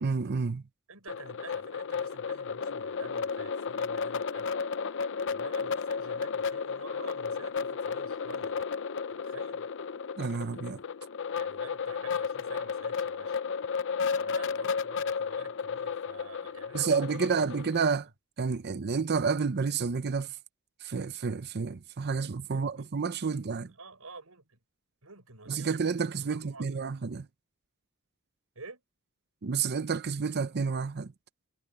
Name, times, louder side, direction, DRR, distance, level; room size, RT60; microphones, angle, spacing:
voice 1, 0.0-0.6 10.2-10.8 16.7-18.1 18.4-20.3 20.8-23.7 25.5-27.3 29.4-31.1, right 5 dB, 50° right, 0.6 m, -30 dB
voice 2, 0.9-4.5 5.3-8.6 9.1-9.7 11.3-13.4 14.2-17.4 22.4-22.9 23.3-24.6 25.0-26.8 28.5-28.8, right 3 dB, 80° right, 6.8 m, -49 dB
sound 1, 1.1-17.8, left 5 dB, 60° left, 0.7 m, -33 dB
head